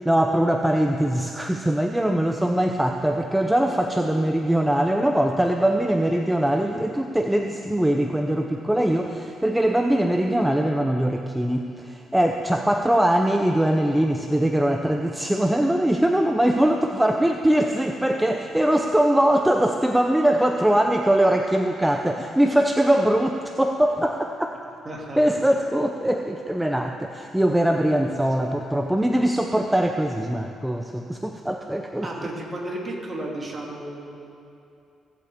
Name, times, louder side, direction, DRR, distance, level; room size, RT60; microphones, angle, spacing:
voice 1, 0.0-24.6 25.2-32.1, right 1 dB, 5° right, 4 dB, 0.7 m, -22 dB
voice 2, 24.8-25.4 28.1-28.2 32.0-34.1, right 1 dB, 30° right, -1 dB, 2.9 m, -33 dB
17.5 x 8.5 x 7.2 m, 2.6 s
cardioid pair, 90°, 0 cm